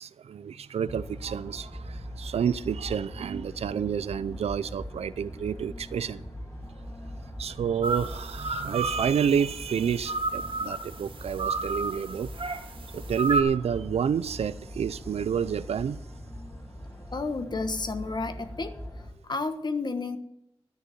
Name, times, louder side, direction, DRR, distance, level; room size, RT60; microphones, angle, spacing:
voice 1, 0.0-6.2 7.4-12.3 12.9-16.0, right 7 dB, 90° right, 0.5 m, -29 dB
sound 1, 0.9-19.1, equal, 30° left, 3.3 m, -41 dB
sound 2, 7.8-13.4, right 3 dB, 60° right, 1.6 m, -32 dB
voice 2, 17.1-18.7 19.2-20.2, left 3 dB, 45° left, 1.4 m, -31 dB
12.5 x 6.7 x 9.2 m
wide cardioid pair, 80°, 10 cm